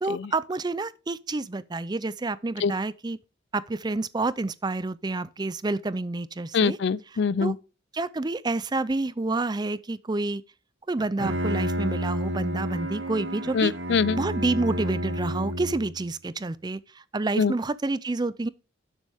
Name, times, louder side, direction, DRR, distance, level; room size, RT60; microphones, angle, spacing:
voice 1, 0.0-3.2 3.5-6.8 7.4-7.5 7.9-10.4 10.9-13.7 14.2-16.8 17.1-18.5, right 2 dB, 20° right, 0.4 m, -28 dB
voice 2, 6.5-7.5 13.5-14.2 17.4-17.5, left 5 dB, 60° left, 0.4 m, -24 dB
Bowed string instrument, 11.0-16.1, equal, 75° right, 2.0 m, -30 dB
11.5 x 7.3 x 3.5 m
head